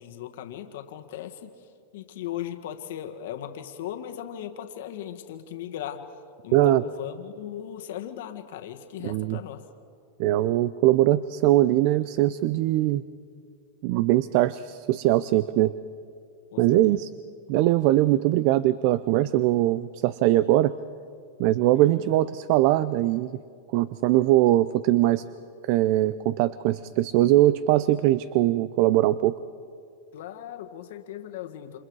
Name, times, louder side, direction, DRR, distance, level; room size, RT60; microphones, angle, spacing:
voice 1, 0.0-9.7 16.5-17.0 21.7-22.2 30.1-31.8, left 11 dB, 70° left, 5 dB, 1.7 m, -38 dB
voice 2, 6.5-6.8 9.0-9.4 10.2-13.0 13.8-15.7 16.6-17.1 17.5-20.7 21.4-23.3 23.7-25.2 25.7-29.4, right 15 dB, 55° right, 16 dB, 0.6 m, -21 dB
29.0 x 27.0 x 4.8 m, 2.3 s
supercardioid pair, 130°, 0 cm